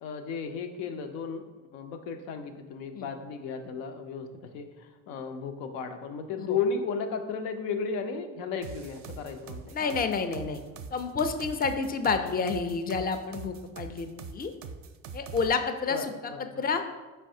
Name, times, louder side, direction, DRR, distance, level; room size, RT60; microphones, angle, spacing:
voice 1, 0.0-9.9 15.9-16.6, left 5 dB, 85° left, 6 dB, 0.5 m, -34 dB
sound 1, 8.6-15.5, right 5 dB, 50° right, 0.4 m, -42 dB
voice 2, 9.7-10.6 10.9-14.5 15.1-16.1 16.6-16.8, left 5 dB, 25° left, 8 dB, 0.4 m, -29 dB
4.6 x 3.2 x 2.6 m, 1.3 s
hypercardioid pair, 60°, 38 cm